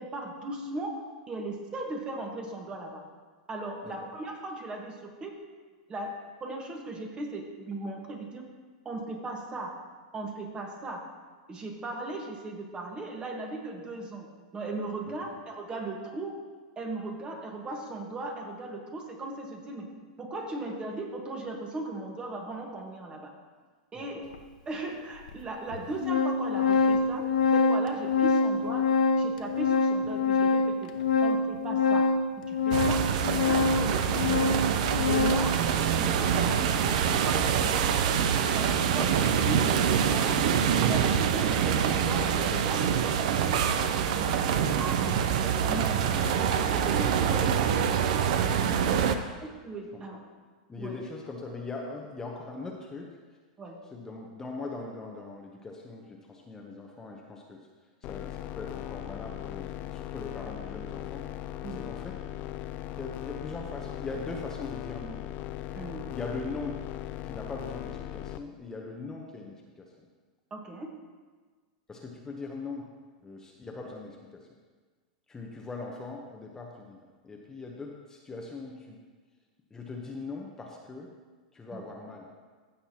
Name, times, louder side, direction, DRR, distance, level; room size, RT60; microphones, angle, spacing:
voice 1, 0.0-3.0 3.5-5.4 5.9-8.4 8.8-9.7 10.1-11.0 11.5-14.3 14.5-16.4 16.8-19.9 20.2-23.3 23.9-24.2 24.7-28.9 29.2-30.9 31.2-32.1 32.5-34.2 35.1-35.6 35.9-38.2 38.5-40.4 40.9-45.1 45.6-46.3 46.7-47.7 49.4-50.2 50.8-51.0 53.6-53.8 61.6-61.9 65.7-66.1 70.5-70.9 81.7-81.8, right 2 dB, 20° right, 2 dB, 1.4 m, -37 dB
voice 2, 23.9-24.3 46.1-46.5 48.6-49.4 49.9-50.0 50.7-53.1 53.9-57.6 58.0-62.1 62.9-65.2 66.1-66.8 67.2-69.9 71.9-72.9 73.2-74.5 75.3-79.0 79.7-81.1 81.5-82.3, left 3 dB, 15° left, -1 dB, 0.9 m, -41 dB
Organ, 24.3-24.4 25.3-25.4 25.7-35.6, left 4 dB, 85° left, 0.6 m, -25 dB
sound 1, 32.7-49.2, right 8 dB, 65° right, 0.6 m, -25 dB
sound 2, 58.0-68.4, left 12 dB, 40° left, 0.4 m, -38 dB
15.0 x 6.6 x 2.9 m, 1.4 s
hypercardioid pair, 125°, 4 cm